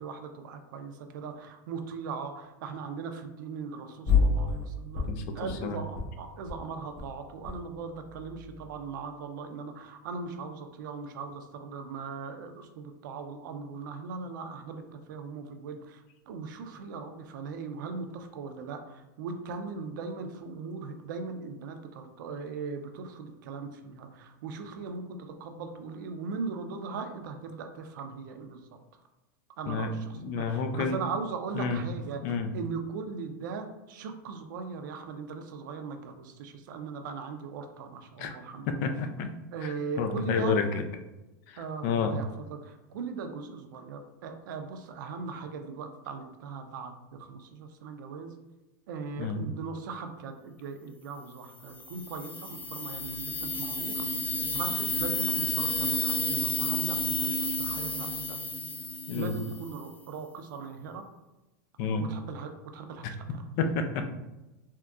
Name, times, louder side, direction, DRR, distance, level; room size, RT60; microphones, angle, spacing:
voice 1, 0.0-5.1 5.3-28.8 29.6-38.9 39.5-40.6 41.6-48.3 48.9-54.2 54.5-58.4 59.1-61.1 62.0-63.4, right 5 dB, 75° right, 6 dB, 0.5 m, -39 dB
sound 1, 4.1-4.7 4.9-5.6 5.9-6.1 6.3-6.5 6.8-7.6 7.9-8.8, left 6 dB, 40° left, 1.0 m, -29 dB
voice 2, 29.7-31.0 31.5-31.8 32.2-32.5 38.2-38.4 38.7-39.3 39.6-40.8 41.5-42.1 49.2-49.4 59.1-59.3 61.8-62.0 63.3-64.0, left 5 dB, 60° left, 7 dB, 0.4 m, -30 dB
sound 2, 51.8-59.7, left 2 dB, 15° left, 0.5 m, -31 dB
3.6 x 2.8 x 2.4 m, 1.0 s
supercardioid pair, 120°, 10 cm